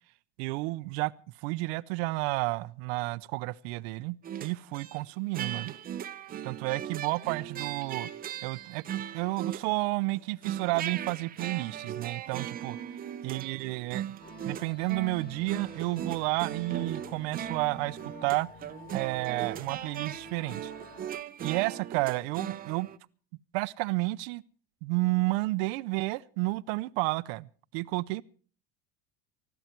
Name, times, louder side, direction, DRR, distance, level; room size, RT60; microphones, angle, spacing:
voice 1, 0.4-1.1 1.4-5.7 6.4-8.1 8.4-12.8 13.2-14.0 14.4-18.5 18.9-20.7 21.4-22.9 23.5-24.4 24.8-28.2, right 22 dB, 85° right, 0.7 m, -31 dB
sound 1, 4.2-5.0 5.3-9.9 10.2-23.0, right 10 dB, 30° right, 0.8 m, -38 dB
sound 2, 14.2-21.1, left 5 dB, 30° left, 6.3 m, -49 dB
20.0 x 14.0 x 4.5 m
cardioid pair, 150°, 30 cm